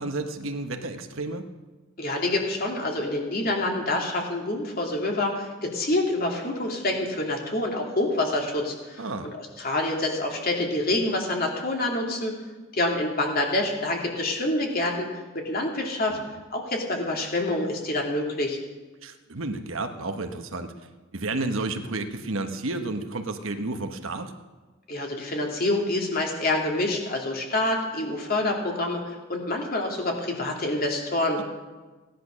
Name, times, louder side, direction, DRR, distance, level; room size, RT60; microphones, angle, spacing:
voice 1, 0.0-1.5 9.0-9.3 16.1-16.3 19.0-20.7 21.1-24.3 31.4-31.5, right 2 dB, 70° right, 7 dB, 1.2 m, -31 dB
voice 2, 2.0-12.3 12.7-15.1 15.4-16.2 16.5-18.6 24.9-31.4, left 2 dB, 45° left, 0 dB, 2.6 m, -27 dB
16.5 x 10.5 x 6.3 m, 1.3 s
head